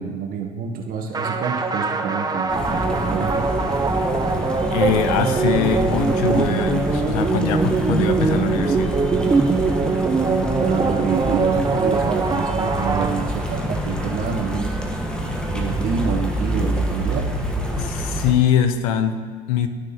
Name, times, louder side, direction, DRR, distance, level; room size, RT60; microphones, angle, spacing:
voice 1, 0.0-3.5 10.5-14.7 15.5-17.3, right 6 dB, 55° right, 3 dB, 0.9 m, -27 dB
sound 1, 1.1-13.7, right 4 dB, 20° right, 0.7 m, -22 dB
sound 2, 2.5-18.3, equal, 5° left, 1.1 m, -26 dB
voice 2, 4.7-8.9 17.8-19.1 19.5-19.7, left 9 dB, 80° left, 9 dB, 0.7 m, -22 dB
12.5 x 6.2 x 2.9 m, 1.5 s
hypercardioid pair, 75°, 18 cm